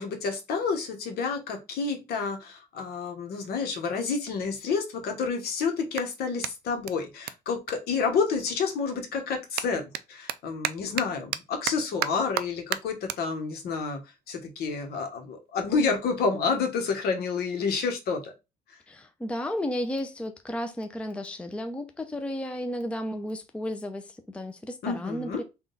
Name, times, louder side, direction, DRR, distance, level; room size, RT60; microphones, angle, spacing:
voice 1, 0.0-14.0 14.3-18.3 24.8-25.4, left 5 dB, 70° left, 1.1 m, -29 dB
Clapping, 4.6-8.7 9.0-15.6, right 11 dB, 65° right, 0.4 m, -37 dB
voice 2, 18.9-25.4, left 1 dB, 5° left, 0.5 m, -33 dB
3.7 x 2.3 x 3.9 m
cardioid pair, 110°, 17 cm